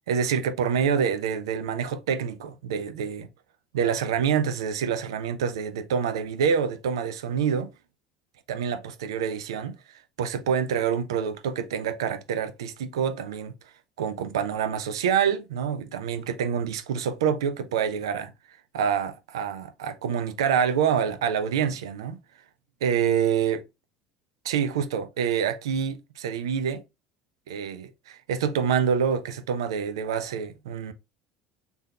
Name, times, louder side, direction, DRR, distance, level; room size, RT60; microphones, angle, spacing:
voice 1, 0.1-3.3 3.7-7.7 8.5-9.8 10.2-13.5 14.0-18.3 18.7-22.2 22.8-23.6 24.4-26.8 27.5-30.9, right 7 dB, 75° right, 0.6 m, -26 dB
4.3 x 3.5 x 2.3 m
figure-of-eight pair, 70°, 3 cm